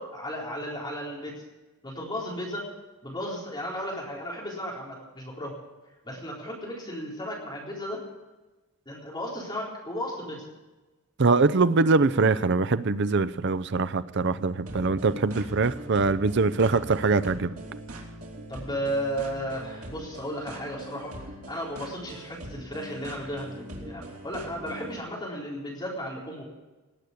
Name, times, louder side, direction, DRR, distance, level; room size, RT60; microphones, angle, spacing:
voice 1, 0.0-1.4 1.8-2.7 3.0-5.5 6.0-8.0 8.9-10.4 18.5-26.5, equal, 20° left, -4 dB, 4.0 m, -34 dB
voice 2, 11.2-17.5, right 3 dB, 55° right, 14 dB, 0.6 m, -23 dB
sound 1, 14.7-25.0, right 1 dB, 80° right, 2.8 m, -42 dB
18.5 x 8.0 x 8.4 m, 1.1 s
head